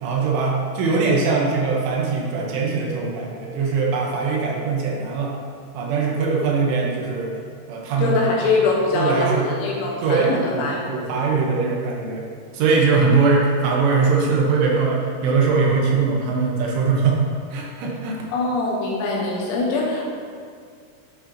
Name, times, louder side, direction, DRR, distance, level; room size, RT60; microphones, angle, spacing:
voice 1, 0.0-5.3 5.7-7.3 7.7-8.2 8.9-9.5 10.0-12.2 12.5-17.2 17.5-18.2, right 4 dB, 80° right, -2 dB, 3.3 m, -21 dB
voice 2, 8.0-10.9 18.3-20.1, left 3 dB, 80° left, -2 dB, 3.0 m, -23 dB
11.5 x 5.5 x 2.8 m, 2.1 s
omnidirectional pair, 5.8 m